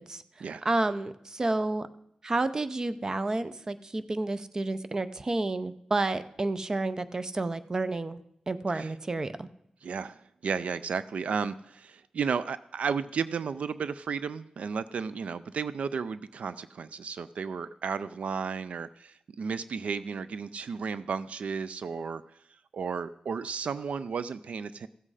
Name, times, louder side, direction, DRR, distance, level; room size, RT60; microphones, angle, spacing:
voice 1, 0.6-1.9 2.2-8.2 8.5-9.5, right 2 dB, 30° right, 12 dB, 0.6 m, -30 dB
voice 2, 9.8-22.2 22.5-24.9, right 5 dB, 70° right, 14 dB, 0.4 m, -33 dB
15.5 x 7.6 x 4.9 m, 0.74 s
wide cardioid pair, 125°, 2 cm